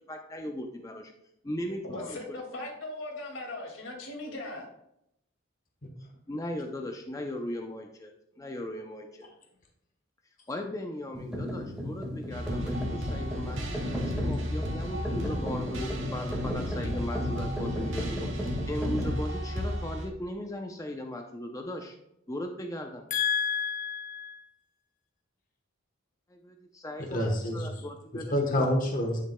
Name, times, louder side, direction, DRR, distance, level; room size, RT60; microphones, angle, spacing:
voice 1, 0.1-1.1 1.4-2.2 6.3-9.3 10.5-22.0 22.3-23.0 26.3-28.7, left 1 dB, 15° left, 3 dB, 0.5 m, -38 dB
voice 2, 1.8-4.7, left 2 dB, 80° left, 1 dB, 2.2 m, -38 dB
sound 1, 11.1-19.1, left 1 dB, 5° right, 1.8 m, -34 dB
sound 2, 12.3-20.1, equal, 70° right, 1.9 m, -34 dB
voice 3, 23.1-24.4 27.0-27.7 28.3-29.2, left 2 dB, 45° left, 1 dB, 1.1 m, -28 dB
10.5 x 6.6 x 2.2 m, 0.80 s
head